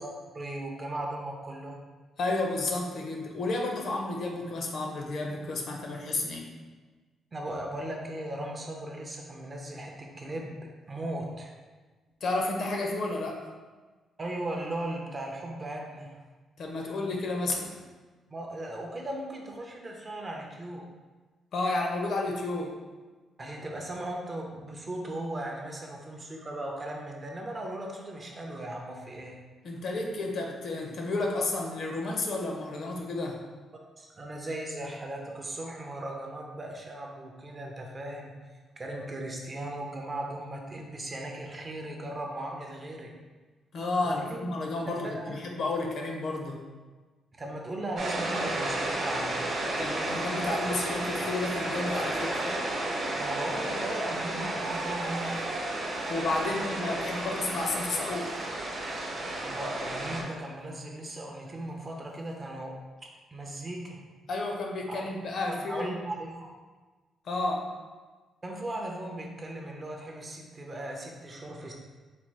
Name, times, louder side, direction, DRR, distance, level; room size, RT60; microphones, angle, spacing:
voice 1, 0.0-1.8 7.3-11.5 14.2-16.2 18.3-20.9 23.4-29.4 34.0-38.3 38.8-43.1 44.0-44.5 44.9-45.4 47.4-49.4 53.2-55.4 59.4-62.8 63.3-64.0 64.9-65.0 65.5-66.5 68.4-71.7, right 1 dB, 25° right, 0 dB, 0.5 m, -37 dB
voice 2, 2.2-6.5 12.2-13.4 16.6-17.7 21.5-22.8 29.6-33.4 43.7-46.6 49.7-52.5 56.1-58.3 64.3-66.0 67.2-67.7, left 2 dB, 50° left, 1 dB, 0.6 m, -31 dB
sound 1, 48.0-60.2, right 1 dB, 45° right, 0.9 m, -32 dB
Speech, 54.6-59.5 60.2-60.5 61.4-62.0, right 3 dB, 75° right, 0.7 m, -45 dB
4.1 x 2.3 x 4.6 m, 1.3 s
cardioid pair, 165°, 0 cm